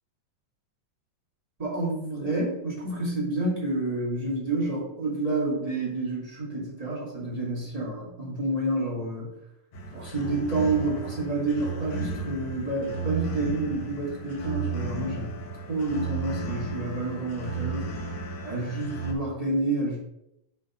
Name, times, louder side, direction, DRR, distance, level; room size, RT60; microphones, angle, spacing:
voice 1, 1.6-9.3 9.9-15.3 15.7-17.9 18.4-20.0, right 2 dB, 15° right, -5 dB, 1.6 m, -29 dB
sound 1, 9.7-19.1, right 4 dB, 60° left, 1.9 m, -34 dB
6.2 x 4.2 x 5.7 m, 0.83 s
omnidirectional pair, 3.7 m